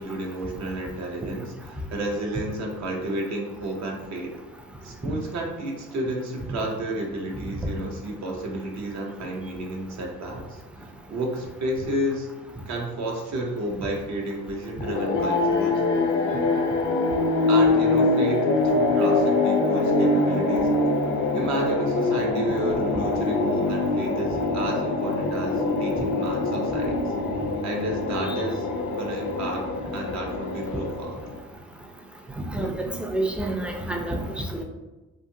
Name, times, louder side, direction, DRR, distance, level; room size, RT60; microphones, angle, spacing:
voice 1, 0.0-4.3 4.8-12.3 12.7-15.8 17.5-20.7 21.3-27.1 27.6-29.7 29.9-31.2, right 1 dB, 65° right, 1 dB, 0.7 m, -31 dB
sound 1, 14.8-31.4, left 2 dB, 75° left, 0.5 m, -24 dB
voice 2, 32.4-34.6, right 1 dB, 5° right, 2 dB, 0.3 m, -28 dB
2.7 x 2.4 x 2.6 m, 1.1 s
cardioid pair, 90°, 30 cm